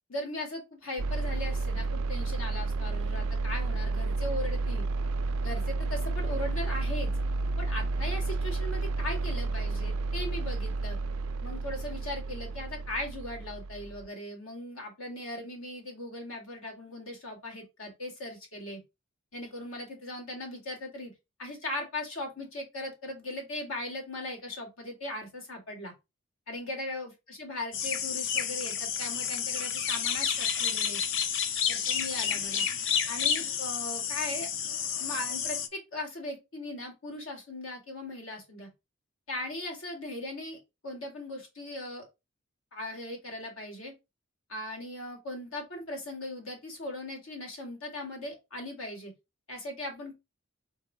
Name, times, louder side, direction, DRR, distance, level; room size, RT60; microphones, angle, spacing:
voice 1, 0.1-4.8 5.4-7.1 7.6-11.0 11.4-18.8 19.3-21.1 21.4-25.9 26.5-31.0 31.7-32.7 33.1-34.5 35.0-38.7 39.3-40.6 40.8-42.0 42.7-43.9 44.5-49.1 49.5-50.1, left 1 dB, 80° left, 2.1 m, -38 dB
sound 1, 1.0-14.1, right 3 dB, 85° right, 0.4 m, -31 dB
sound 2, 27.7-35.7, left 7 dB, 65° left, 0.6 m, -30 dB
4.7 x 2.4 x 4.7 m
head